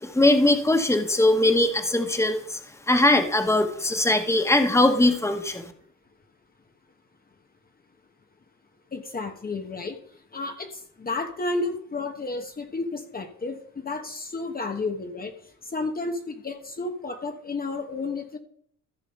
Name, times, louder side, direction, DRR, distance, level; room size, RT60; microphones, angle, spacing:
voice 1, 0.0-2.6 2.9-5.6, left 2 dB, 10° left, 7 dB, 1.4 m, -21 dB
voice 2, 3.9-4.4 8.9-10.0 10.3-15.3 15.6-18.4, left 3 dB, 30° left, 5 dB, 1.3 m, -32 dB
14.5 x 5.3 x 5.4 m, 0.63 s
cardioid pair, 90°, 30 cm